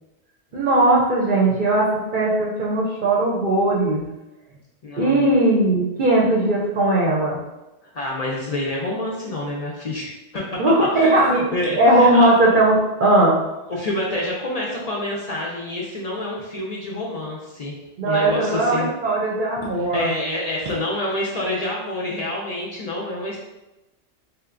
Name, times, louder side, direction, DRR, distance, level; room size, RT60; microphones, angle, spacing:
voice 1, 0.5-1.9 2.1-4.1 5.0-7.4 10.6-11.5 11.8-13.4 18.0-20.1, right 1 dB, 55° right, -4 dB, 0.6 m, -18 dB
voice 2, 4.8-5.3 7.9-10.6 10.9-12.5 13.7-17.8 18.0-18.9 19.8-23.4, left 1 dB, 50° left, -3 dB, 0.5 m, -28 dB
3.5 x 2.9 x 2.5 m, 0.99 s
omnidirectional pair, 1.2 m